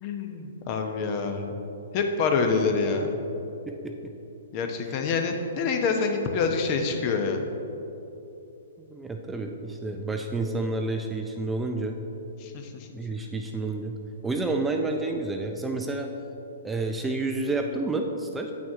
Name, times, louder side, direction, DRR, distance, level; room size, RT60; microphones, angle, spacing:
voice 1, 0.0-1.6 1.9-3.2 4.5-7.5 12.4-12.9, left 4 dB, 40° left, 5 dB, 0.8 m, -26 dB
voice 2, 3.7-4.1 4.9-5.0 8.8-12.0 12.9-14.0 14.2-16.1 16.6-18.5, right 2 dB, 10° right, 3 dB, 0.4 m, -30 dB
8.4 x 6.1 x 3.6 m, 3.0 s
hypercardioid pair, 125°, 0 cm